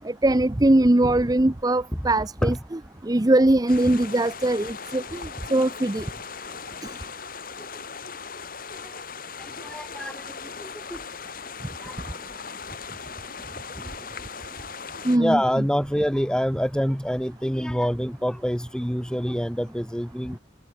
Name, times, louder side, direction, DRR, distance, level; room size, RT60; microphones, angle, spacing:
voice 1, 0.0-2.5 3.1-6.1 15.0-15.4, right 1 dB, 20° right, 0.7 m, -21 dB
sound 1, 3.7-15.2, left 5 dB, 55° left, 3.7 m, -38 dB
voice 2, 8.7-9.0 9.4-11.0 11.8-12.3 15.1-20.4, equal, 5° left, 3.2 m, -27 dB
head